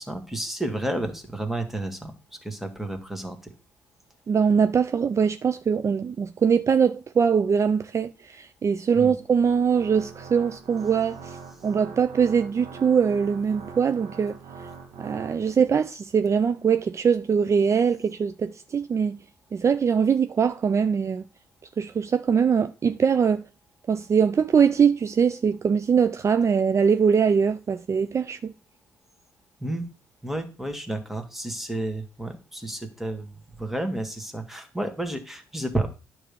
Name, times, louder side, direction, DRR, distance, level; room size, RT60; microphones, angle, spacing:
voice 1, 0.0-2.1 2.4-3.5 8.9-9.1 29.6-29.9 30.2-33.3 33.6-35.9, right 1 dB, 5° right, 2.0 m, -31 dB
voice 2, 4.3-11.4 11.6-14.4 15.0-19.2 19.5-21.2 21.8-23.4 23.9-28.5, right 6 dB, 40° right, 0.5 m, -22 dB
Organ, 9.2-15.8, right 5 dB, 70° right, 1.4 m, -43 dB
9.7 x 3.3 x 6.9 m
hypercardioid pair, 55°, 8 cm